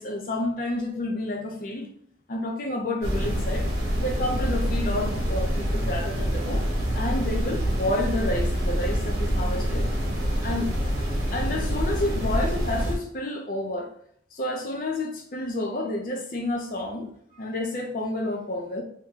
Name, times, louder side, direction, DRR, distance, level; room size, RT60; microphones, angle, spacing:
voice 1, 0.0-1.9 2.3-3.7 4.0-6.7 6.9-9.9 10.4-10.7 11.3-13.9 14.3-18.8, left 1 dB, 50° left, 1 dB, 0.6 m, -30 dB
sound 1, 3.0-13.0, equal, 55° right, 0.9 m, -26 dB
2.9 x 2.2 x 3.6 m, 0.63 s
head